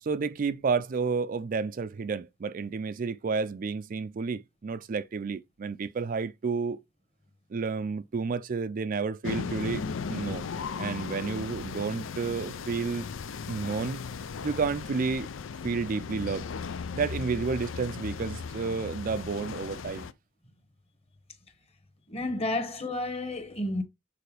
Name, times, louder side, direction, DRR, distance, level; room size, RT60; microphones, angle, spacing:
voice 1, 0.0-6.8 7.5-9.8 10.1-10.4 10.8-13.1 13.5-14.0 14.4-15.3 15.6-16.5 16.9-20.1, right 5 dB, 45° right, 0.4 m, -31 dB
sound 1, 9.2-20.1, left 5 dB, 90° left, 0.5 m, -37 dB
voice 2, 22.1-23.8, left 2 dB, 30° left, 1.4 m, -31 dB
6.8 x 4.6 x 3.3 m
head